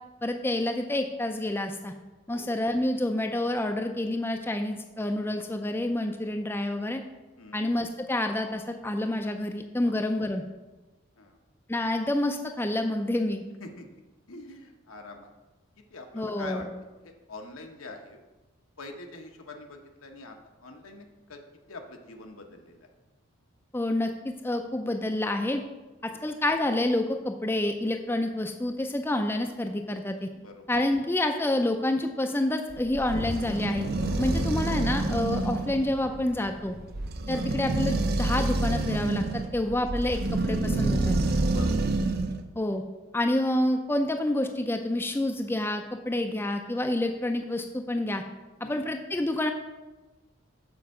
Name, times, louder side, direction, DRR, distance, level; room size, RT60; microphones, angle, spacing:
voice 1, 0.2-1.9 2.3-7.0 7.5-10.4 11.7-13.4 16.1-16.7 23.7-25.6 26.0-30.3 30.7-33.9 34.2-36.8 37.3-41.1 42.5-42.8 43.1-48.2 48.7-49.5, left 1 dB, 10° left, 5 dB, 0.4 m, -28 dB
voice 2, 13.6-14.0 14.3-15.3 15.9-16.6 17.0-18.2 18.8-21.4 21.7-22.9 26.0-26.3 30.3-30.6 34.3-34.6 37.3-37.5 41.5-41.8 48.6-48.9, left 2 dB, 85° left, 4 dB, 1.1 m, -44 dB
sound 1, 32.7-42.4, right 2 dB, 45° right, 0.6 m, -28 dB
sound 2, 33.1-39.8 40.2-40.3 40.8-40.9 41.4-41.6, left 1 dB, 55° left, 1.0 m, -40 dB
6.8 x 4.6 x 6.5 m, 1.2 s
head